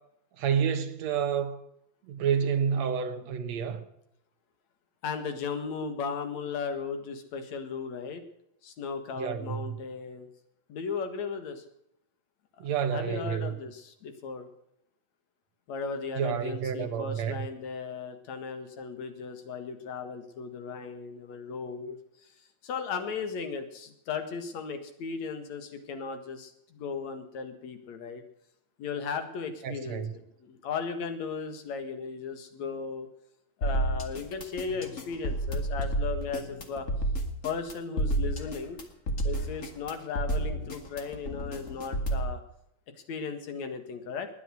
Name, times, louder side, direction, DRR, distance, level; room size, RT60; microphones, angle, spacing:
voice 1, 0.4-1.6 2.1-3.8 9.2-9.8 12.6-13.6 16.2-17.5 29.6-30.1, right 7 dB, 60° right, 2.2 m, -29 dB
voice 2, 5.0-8.2 8.6-10.3 10.7-11.6 12.9-14.5 15.7-22.0 22.2-22.3 22.6-28.2 28.8-33.1 33.6-36.9 37.4-38.8 39.2-42.4 43.1-44.3, left 5 dB, 55° left, 2.8 m, -36 dB
sound 1, 33.6-42.3, right 1 dB, 30° left, 1.7 m, -31 dB
20.5 x 10.0 x 6.4 m
omnidirectional pair, 4.1 m